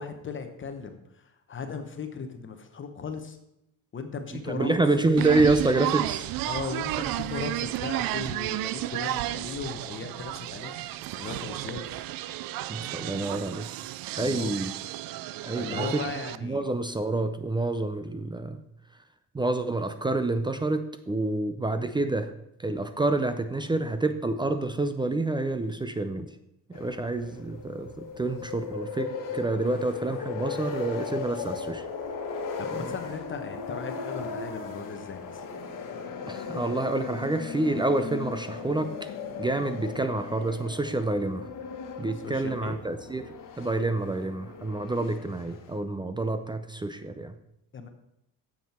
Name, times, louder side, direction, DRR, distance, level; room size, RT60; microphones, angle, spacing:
voice 1, 0.0-3.4 3.9-4.8 6.4-10.7 11.2-11.9 14.1-14.6 15.5-16.7 32.6-35.4 42.2-42.8 47.7-47.9, left 5 dB, 35° left, 6 dB, 1.0 m, -37 dB
voice 2, 4.3-6.3 12.7-13.7 14.2-14.7 15.4-16.0 16.4-18.6 19.3-22.3 22.6-26.3 26.7-31.8 32.7-32.9 36.3-39.1 39.4-41.5 42.0-47.3, right 2 dB, 15° right, 9 dB, 0.4 m, -28 dB
sound 1, 5.2-16.4, right 15 dB, 75° right, 0.5 m, -32 dB
sound 2, 26.7-45.8, left 5 dB, 60° left, 1.4 m, -37 dB
9.1 x 7.5 x 4.3 m, 0.83 s
cardioid pair, 125°, 35 cm